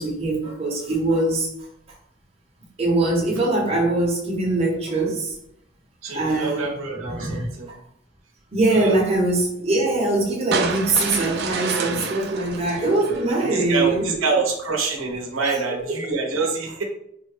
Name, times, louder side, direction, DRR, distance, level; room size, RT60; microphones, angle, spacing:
voice 1, 0.0-1.5 2.8-5.3 6.1-6.7 6.9-7.8 8.5-14.1 15.4-15.8, right 2 dB, 30° right, -2 dB, 0.7 m, -22 dB
voice 2, 6.0-7.7 8.7-9.0 11.7-12.2 12.8-16.8, right 4 dB, 90° right, 2 dB, 0.7 m, -27 dB
sound 1, 10.5-13.8, right 5 dB, 55° right, 0.4 m, -29 dB
3.5 x 2.1 x 3.2 m, 0.74 s
head